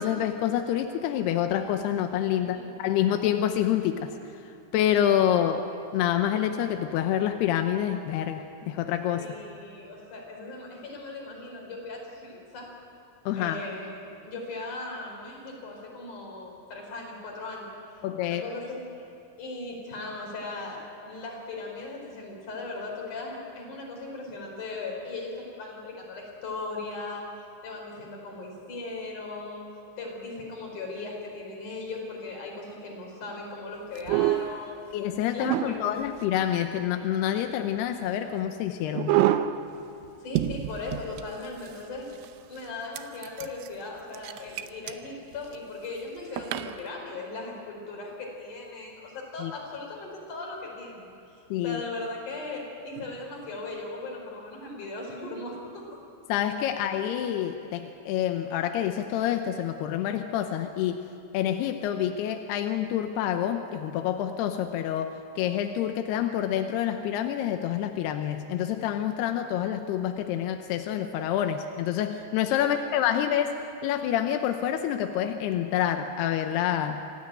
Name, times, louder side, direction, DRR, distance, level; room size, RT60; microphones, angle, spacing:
voice 1, 0.0-4.1 4.7-9.3 13.3-13.6 18.0-18.4 34.9-39.2 49.4-49.5 51.5-51.8 56.3-61.1 61.3-73.5 73.8-77.0, left 10 dB, 80° left, 6 dB, 2.4 m, -27 dB
voice 2, 9.2-12.7 13.3-17.7 18.2-19.1 19.4-27.3 27.6-29.7 30.0-34.8 35.3-36.0 40.2-42.1 42.5-51.4 51.6-55.8 72.6-72.8 73.1-73.4, left 3 dB, 40° left, -1 dB, 5.8 m, -38 dB
sound 1, 34.0-34.6 35.4-36.2 38.9-39.6 40.0-40.1 40.4-41.8 42.2-42.3 43.0-43.7 44.2-44.9 45.4-45.6 46.4-46.8, right 13 dB, 90° right, 3.4 m, -27 dB
26.5 x 16.5 x 9.1 m, 2.6 s
omnidirectional pair, 5.6 m